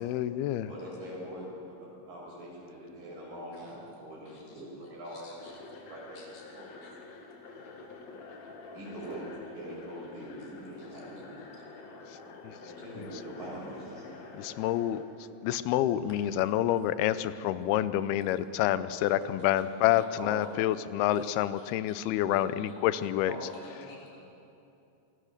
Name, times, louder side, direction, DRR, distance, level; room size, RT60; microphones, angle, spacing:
voice 1, 0.0-0.7 12.4-12.5 13.0-13.1 14.4-15.0 15.4-23.3, left 12 dB, 90° left, 14 dB, 2.6 m, -28 dB
voice 2, 0.7-1.4 2.1-5.3 5.9-6.2 6.5-6.9 8.7-9.3 9.5-11.4 12.6-14.1 20.2-20.4 23.3-23.9, equal, 60° right, -5 dB, 9.1 m, -43 dB
voice 3, 4.3-5.8 6.1-6.9 8.1-8.3 10.2-11.0 11.4-11.5 19.9-20.0 21.1-21.3 21.6-22.7 23.5-24.2, left 2 dB, 65° left, -2 dB, 5.3 m, -58 dB
sound 1, 5.4-15.0, left 3 dB, 50° left, 2.8 m, -48 dB
25.5 x 19.5 x 6.6 m, 2.7 s
omnidirectional pair, 4.4 m